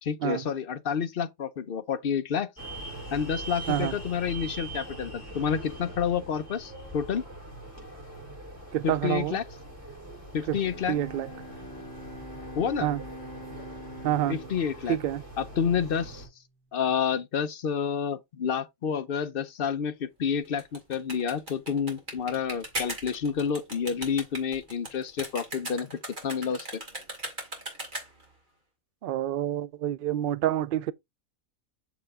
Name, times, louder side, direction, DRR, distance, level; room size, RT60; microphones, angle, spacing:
voice 1, 0.0-2.5 3.1-7.2 8.8-9.4 10.3-11.0 12.5-12.9 14.3-15.0 15.4-16.3 16.7-25.9 26.2-26.8, left 7 dB, 50° left, 0.7 m, -29 dB
sound 1, 2.6-16.3, right 1 dB, 10° right, 5.4 m, -42 dB
voice 2, 8.7-9.4 10.5-10.6 10.9-11.3 12.8-13.0 14.0-14.4 14.9-15.2 29.0-30.9, right 12 dB, 80° right, 0.5 m, -28 dB
Bowed string instrument, 10.6-16.5, equal, 15° left, 1.8 m, -45 dB
sound 2, 20.4-28.3, right 1 dB, 35° right, 2.5 m, -38 dB
6.7 x 4.8 x 3.5 m
omnidirectional pair, 1.5 m